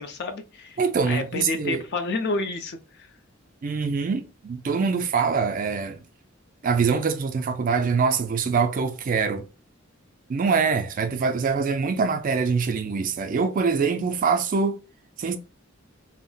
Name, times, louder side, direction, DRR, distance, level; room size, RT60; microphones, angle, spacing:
voice 1, 0.0-0.8 1.1-3.1, left 3 dB, 55° left, 0.5 m, -30 dB
voice 2, 0.8-1.8 3.6-6.0 6.6-9.4 10.3-14.8 15.2-15.4, right 5 dB, 40° right, 0.4 m, -24 dB
2.3 x 2.0 x 3.6 m
head